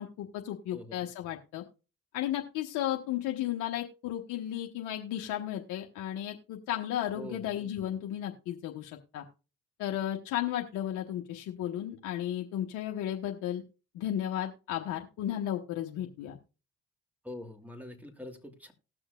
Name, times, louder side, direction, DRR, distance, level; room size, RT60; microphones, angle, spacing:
voice 1, 0.0-1.6 2.1-9.2 9.8-13.6 13.9-16.4, left 11 dB, 80° left, 2 dB, 1.1 m, -34 dB
voice 2, 0.7-1.0 7.1-7.5 17.2-18.7, left 1 dB, 5° right, 5 dB, 2.6 m, -44 dB
19.0 x 6.3 x 2.4 m, 0.33 s
supercardioid pair, 65°, 29 cm